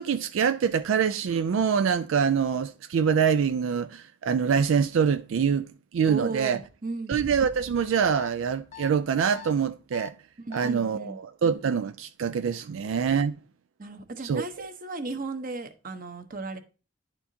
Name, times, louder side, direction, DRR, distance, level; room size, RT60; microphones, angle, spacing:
voice 1, 0.0-5.7 5.9-6.6 7.1-10.1 10.5-13.4 14.2-14.4, right 6 dB, 85° right, 0.4 m, -25 dB
voice 2, 6.1-7.2 10.5-11.2 13.8-16.6, right 3 dB, 45° right, 1.0 m, -35 dB
sound 1, 7.1-9.7, right 2 dB, 20° right, 0.4 m, -45 dB
sound 2, 8.1-8.3 8.7-8.9 9.3-9.5 9.9-10.1 10.5-10.7, left 11 dB, 35° left, 0.6 m, -42 dB
11.0 x 4.5 x 2.7 m
head